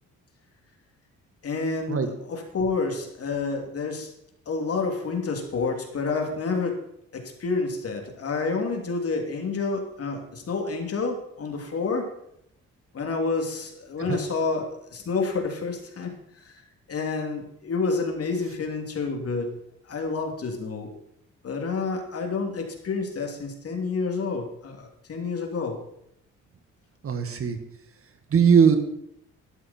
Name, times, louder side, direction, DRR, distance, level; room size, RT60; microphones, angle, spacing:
voice 1, 1.4-4.1 4.5-6.8 7.1-12.1 12.9-16.1 16.4-16.6 16.9-19.5 19.9-21.0 21.4-25.8, left 4 dB, 50° left, 3 dB, 2.9 m, -29 dB
voice 2, 27.0-27.6 28.3-28.8, right 7 dB, 45° right, 8 dB, 1.7 m, -19 dB
12.5 x 11.5 x 4.4 m, 0.76 s
cardioid pair, 90°, 30 cm